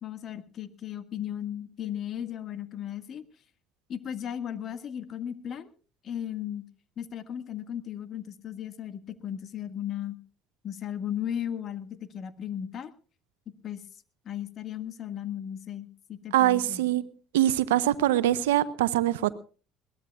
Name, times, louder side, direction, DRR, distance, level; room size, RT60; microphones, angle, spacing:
voice 1, 0.0-3.2 3.9-5.7 6.0-6.6 7.0-10.2 10.6-12.9 13.6-13.8 14.2-16.8, left 10 dB, 50° left, 12 dB, 1.7 m, -36 dB
voice 2, 16.3-17.0 17.3-19.3, right 13 dB, 85° right, 14 dB, 0.8 m, -23 dB
21.5 x 18.0 x 2.3 m, 0.39 s
hypercardioid pair, 65°, 0 cm